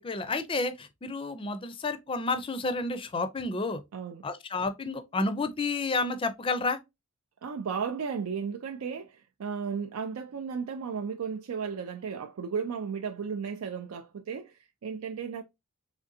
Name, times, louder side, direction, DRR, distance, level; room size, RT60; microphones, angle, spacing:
voice 1, 0.0-3.8 4.2-6.8, left 3 dB, 25° left, 0.4 m, -30 dB
voice 2, 3.9-4.2 7.4-15.4, right 6 dB, 85° right, 0.4 m, -34 dB
3.7 x 3.3 x 2.6 m
head